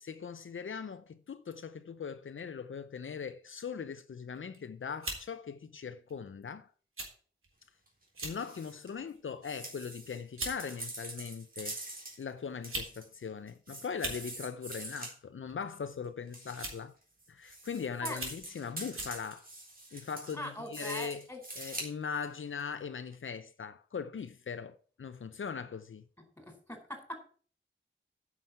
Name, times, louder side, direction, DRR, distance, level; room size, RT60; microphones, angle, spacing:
voice 1, 0.0-6.7 8.2-11.8 12.2-17.0 17.3-19.5 19.9-21.3 21.6-26.1, left 6 dB, 75° left, 0.7 m, -40 dB
sound 1, 4.3-4.6 5.0-5.2 6.1-6.3 7.0-7.1 7.4-7.5 8.1-8.4 8.9-9.2 10.0-10.1 10.4-10.6 11.6-11.7 12.5-12.9 13.2-13.3 13.9-14.2 15.5-15.7 16.5-16.9 17.5-17.6 18.1-18.4 18.9-19.2, right 2 dB, 85° right, 3.7 m, -39 dB
sound 2, 7.9-8.0 8.2-8.9 9.4-12.2 12.6-13.2 13.5-15.1 16.3-16.8 17.2-21.9 22.6-22.7 23.1-23.2, right 2 dB, 45° right, 3.8 m, -44 dB
voice 2, 20.3-21.4 26.4-27.2, left 1 dB, 10° left, 4.4 m, -41 dB
9.3 x 6.1 x 7.8 m
wide cardioid pair, 80°, 21 cm